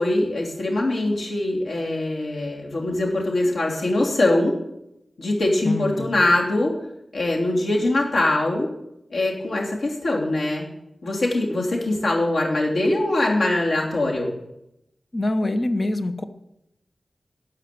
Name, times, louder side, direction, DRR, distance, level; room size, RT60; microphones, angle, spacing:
voice 1, 0.0-4.6 5.2-6.7 7.1-8.7 9.1-10.7 11.0-14.3, left 2 dB, 85° left, -1 dB, 2.9 m, -22 dB
voice 2, 5.6-6.2 15.1-16.2, left 2 dB, 35° left, 9 dB, 0.9 m, -25 dB
13.0 x 5.7 x 9.4 m, 0.83 s
wide cardioid pair, 105°, 0 cm